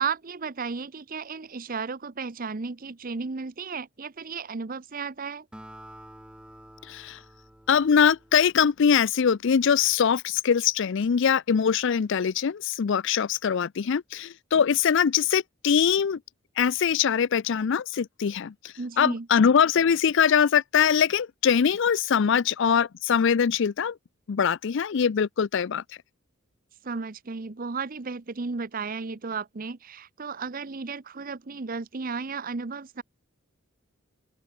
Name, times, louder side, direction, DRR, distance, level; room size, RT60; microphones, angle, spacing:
voice 1, 0.0-5.5 18.8-19.3 26.8-33.0, right 5 dB, 40° right, 0.7 m, -34 dB
Acoustic guitar, 5.5-9.1, equal, 5° right, 2.4 m, -49 dB
voice 2, 6.9-7.2 7.7-16.2 16.6-18.5 19.0-24.0 24.3-25.8, left 7 dB, 60° left, 0.4 m, -22 dB
open air
head